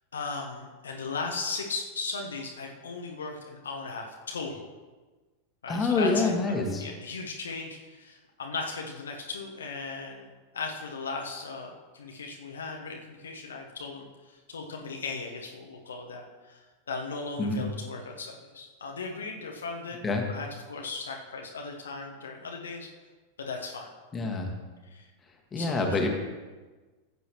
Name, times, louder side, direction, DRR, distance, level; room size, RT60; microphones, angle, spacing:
voice 1, 0.1-4.6 5.6-6.3 6.8-20.0 20.3-22.9 23.4-23.9 24.8-25.1 25.6-26.0, left 4 dB, 70° left, 1 dB, 1.1 m, -37 dB
voice 2, 5.7-6.8 17.4-17.6 20.0-20.2 24.1-24.5 25.5-26.1, left 3 dB, 20° left, 2 dB, 1.7 m, -26 dB
14.5 x 8.2 x 3.1 m, 1.3 s
figure-of-eight pair, 90°, 0 cm